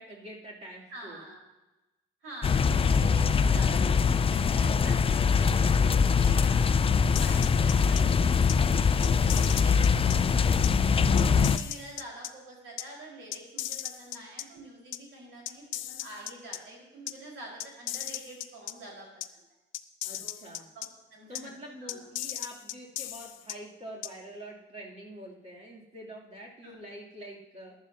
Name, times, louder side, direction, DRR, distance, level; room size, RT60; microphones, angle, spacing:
voice 1, 0.0-1.2 20.0-20.7 21.3-27.8, right 1 dB, 35° right, -4 dB, 2.9 m, -46 dB
voice 2, 0.9-1.4 2.2-10.5 11.0-19.1 20.2-21.5 21.8-22.1 26.6-26.8, right 1 dB, 80° right, -2 dB, 4.6 m, -46 dB
sound 1, 2.4-11.6, left 6 dB, 30° left, 0.4 m, -23 dB
sound 2, 7.1-8.0 8.5-8.6 9.0-10.2 10.6-10.7 11.2-12.3 12.8-12.9 13.3-14.4 14.9-15.0 15.5-16.6 17.1-17.2 17.6-18.7 19.2-19.3 19.7-20.9 21.3-21.4 21.9-23.5 24.0-24.1, left 13 dB, 85° left, 0.5 m, -36 dB
14.5 x 11.5 x 2.8 m, 1.0 s
cardioid pair, 90°, 20 cm